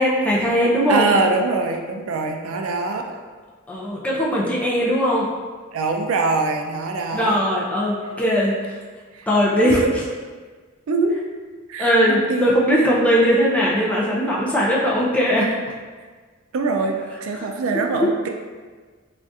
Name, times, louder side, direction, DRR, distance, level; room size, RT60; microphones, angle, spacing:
voice 1, 0.0-1.1 3.7-5.3 7.1-8.8 9.3-9.8 11.8-15.5, equal, 5° left, -5 dB, 0.5 m, -19 dB
voice 2, 0.9-3.0 5.7-7.4 9.1-9.3 9.6-9.9 10.9-11.1 11.7-12.6 16.5-18.3, right 3 dB, 80° right, 3 dB, 0.4 m, -23 dB
3.5 x 2.4 x 2.6 m, 1.4 s
head